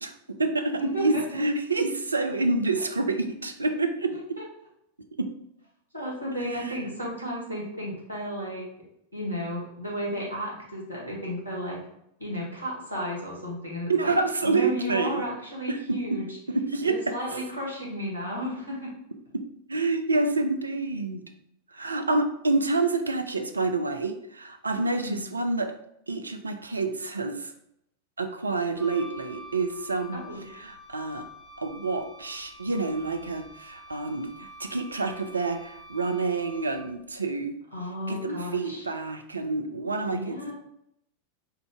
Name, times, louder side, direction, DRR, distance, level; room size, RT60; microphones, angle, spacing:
voice 1, 0.0-4.4 5.2-5.3 6.5-6.7 13.9-15.3 15.7-16.2 16.5-17.1 19.3-19.4 19.7-21.2 21.7-25.7 26.1-27.5 28.2-31.2 31.6-37.6 38.1-40.5, right 3 dB, 80° right, 7 dB, 0.4 m, -28 dB
voice 2, 0.8-1.4 4.1-4.4 5.9-8.6 9.1-11.8 12.2-14.1 14.4-16.3 16.8-18.9 24.7-25.2 30.1-30.4 37.7-38.8 40.1-40.5, equal, 85° left, -3 dB, 1.6 m, -33 dB
Wind instrument woodwind instrument, 28.8-37.1, equal, ahead, 1.3 m, -47 dB
4.5 x 2.5 x 3.5 m, 0.76 s
figure-of-eight pair, 90°, 0 cm